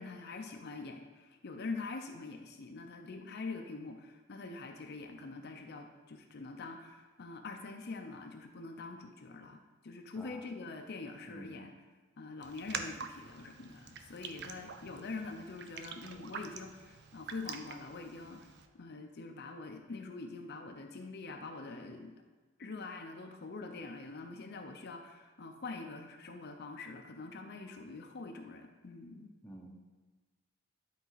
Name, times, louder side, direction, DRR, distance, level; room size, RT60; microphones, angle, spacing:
voice 1, 0.0-11.7 12.2-18.5 18.8-22.1 22.6-29.3, left 3 dB, 55° left, 4 dB, 0.6 m, -44 dB
voice 2, 11.3-11.6 29.4-29.7, right 1 dB, 5° left, 0 dB, 0.8 m, -50 dB
Raindrop, 12.4-18.7, right 6 dB, 55° right, 0.5 m, -46 dB
11.0 x 4.1 x 4.0 m, 1.3 s
head